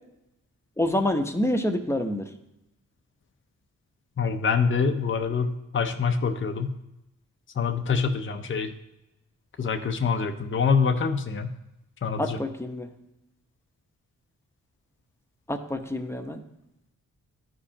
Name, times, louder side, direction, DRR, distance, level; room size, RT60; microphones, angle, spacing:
voice 1, 0.8-2.3 12.2-12.9 15.5-16.4, left 1 dB, 10° left, 5 dB, 0.9 m, -27 dB
voice 2, 4.2-6.7 7.6-8.7 9.6-11.5 12.0-12.4, left 5 dB, 35° left, 6 dB, 0.7 m, -25 dB
12.5 x 5.0 x 2.8 m, 0.90 s
cardioid pair, 60°, 33 cm